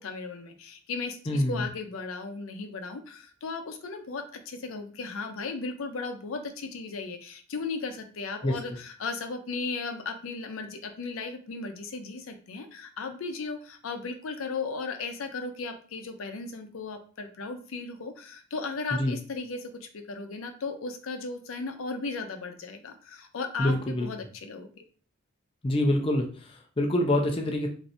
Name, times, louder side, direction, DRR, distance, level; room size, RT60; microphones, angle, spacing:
voice 1, 0.0-24.8, left 4 dB, 85° left, 6 dB, 0.5 m, -36 dB
voice 2, 1.3-1.7 8.4-8.5 18.9-19.2 23.6-24.1 25.6-27.7, left 1 dB, 25° left, 2 dB, 0.4 m, -26 dB
3.2 x 2.6 x 2.7 m, 0.41 s
head